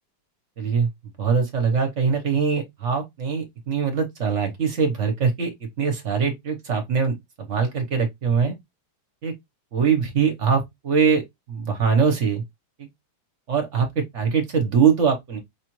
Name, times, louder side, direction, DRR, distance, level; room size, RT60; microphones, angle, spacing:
voice 1, 0.6-0.9 1.2-5.5 5.8-7.2 7.5-8.5 9.2-9.3 9.7-12.4 12.8-12.9 13.5-15.4, right 6 dB, 50° right, 1.1 m, -22 dB
5.0 x 2.4 x 3.0 m
omnidirectional pair, 2.1 m